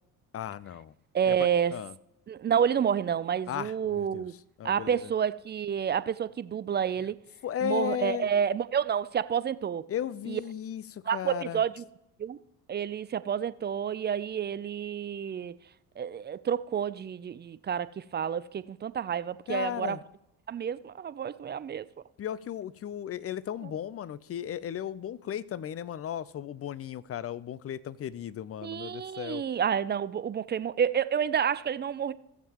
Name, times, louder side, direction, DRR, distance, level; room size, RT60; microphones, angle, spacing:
voice 1, 0.3-0.9 1.2-1.4 1.7-1.9 3.5-4.2 4.6-5.0 7.4-8.3 9.9-11.6 19.5-20.0 22.2-29.4, left 10 dB, 30° left, 0.5 m, -35 dB
voice 2, 1.1-1.7 2.3-4.3 4.6-7.2 7.6-9.8 10.3-10.4 11.1-11.8 12.2-12.4 12.7-15.5 16.0-20.0 20.5-21.9 28.6-32.1, right 8 dB, 25° right, 0.4 m, -29 dB
16.0 x 7.4 x 3.0 m
hypercardioid pair, 65°, 46 cm